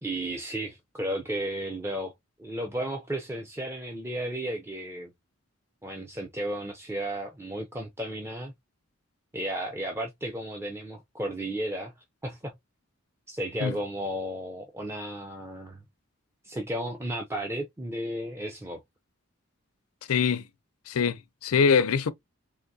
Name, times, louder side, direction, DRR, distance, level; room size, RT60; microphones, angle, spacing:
voice 1, 0.0-2.1 2.4-5.1 5.8-8.5 9.3-11.9 12.2-12.5 13.3-15.8 16.4-18.8, right 1 dB, 10° right, 0.4 m, -33 dB
voice 2, 20.1-20.4 20.9-22.1, left 6 dB, 90° left, 0.5 m, -23 dB
3.7 x 2.5 x 2.6 m
head